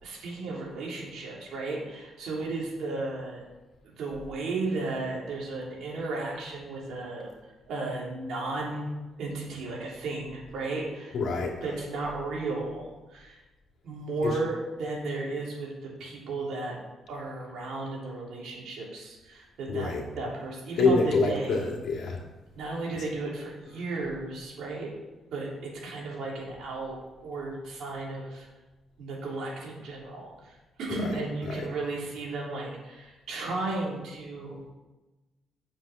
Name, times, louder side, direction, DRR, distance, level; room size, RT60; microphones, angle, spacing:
voice 1, 0.0-3.4 3.8-7.3 7.7-8.9 9.2-11.2 11.6-13.4 13.8-16.8 17.1-21.6 22.5-24.9 25.3-27.0 27.2-28.5 29.0-34.6, right 2 dB, 75° right, -3 dB, 3.3 m, -34 dB
voice 2, 11.1-11.6 14.2-14.4 19.7-20.0 20.8-22.2 30.9-31.1 31.4-31.6, left 3 dB, 65° left, 0 dB, 2.2 m, -26 dB
7.0 x 6.1 x 7.4 m, 1.1 s
cardioid pair, 90°, 0 cm